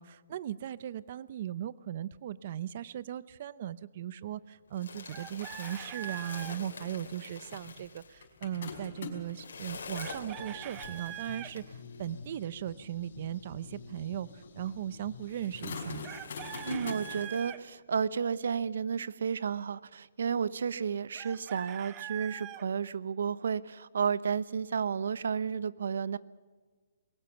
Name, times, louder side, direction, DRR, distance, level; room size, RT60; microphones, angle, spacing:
voice 1, 0.0-16.1, right 11 dB, 40° right, 18 dB, 0.6 m, -38 dB
sound 1, 4.7-12.1 13.0-13.1 13.4-13.5 14.2-14.3 14.7-14.8 15.3-17.5, left 4 dB, 90° left, 4.0 m, -47 dB
Chicken rooster, 5.1-6.6 10.0-11.5 16.0-17.6 21.1-22.6, right 13 dB, 20° right, 0.9 m, -43 dB
sound 2, 7.5-9.4 10.0-17.0, left 5 dB, 55° left, 5.5 m, -45 dB
voice 2, 16.6-26.2, right 6 dB, 75° right, 17 dB, 0.9 m, -32 dB
22.0 x 19.0 x 6.9 m, 1.4 s
hypercardioid pair, 165°, 0 cm